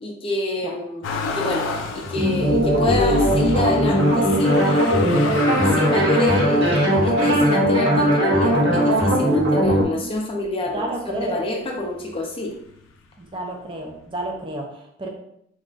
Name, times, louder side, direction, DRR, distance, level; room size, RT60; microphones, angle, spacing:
voice 1, 0.0-5.1 5.7-12.5, left 2 dB, 30° left, 0 dB, 0.4 m, -27 dB
Motor vehicle (road), 1.0-10.2 10.8-11.6 11.8-13.0 14.0-14.1, left 3 dB, 90° left, 0.4 m, -32 dB
sound 1, 2.1-9.8, equal, 60° right, 0.9 m, -19 dB
voice 2, 10.7-11.5 13.2-15.1, right 1 dB, 25° right, 1 dB, 0.5 m, -31 dB
2.4 x 2.1 x 3.7 m, 0.73 s
head